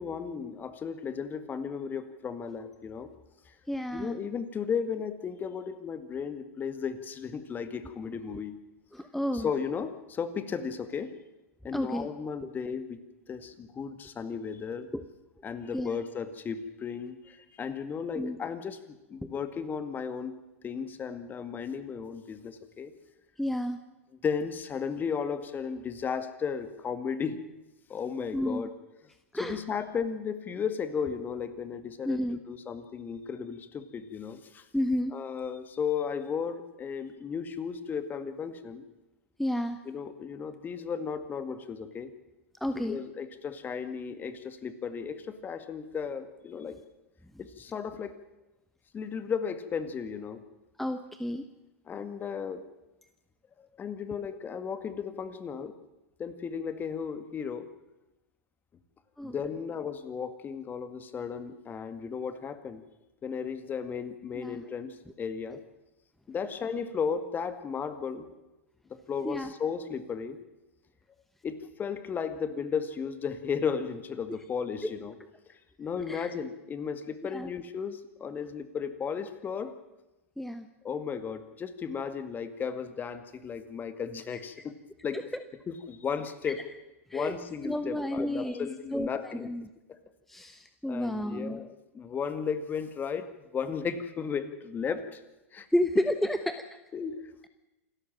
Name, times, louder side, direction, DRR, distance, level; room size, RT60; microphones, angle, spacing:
voice 1, 0.0-3.1 3.5-3.6 3.9-8.6 9.3-11.1 11.6-13.0 13.3-14.9 15.4-20.3 20.6-22.9 24.2-27.4 27.9-28.7 29.4-34.7 35.1-38.9 39.9-42.1 42.7-46.8 47.4-48.2 48.9-50.4 51.9-52.6 53.6-55.7 56.2-57.7 59.2-62.8 63.2-65.6 66.3-68.3 68.9-70.4 71.4-75.2 75.5-79.7 80.8-84.8 85.0-85.2 85.7-86.6 87.1-89.5 89.9-90.0 90.9-93.3 93.5-95.2 95.5-95.7 96.9-97.3, left 6 dB, 25° left, 11 dB, 2.0 m, -35 dB
voice 2, 3.7-4.2 8.9-9.5 11.7-12.1 12.4-12.5 14.9-15.0 15.7-15.9 18.2-18.4 23.4-23.8 28.3-28.7 29.3-29.6 32.0-32.4 34.7-35.1 39.4-39.8 42.6-43.0 50.8-51.4 59.2-59.3 64.3-64.6 69.2-69.5 74.8-74.9 76.1-76.3 77.3-77.5 80.4-80.6 84.3-84.4 87.1-87.3 87.6-89.7 90.3-91.6 95.7-96.6, left 1 dB, 5° left, 9 dB, 1.1 m, -31 dB
27.5 x 13.0 x 7.6 m, 1.0 s
hypercardioid pair, 95°, 7 cm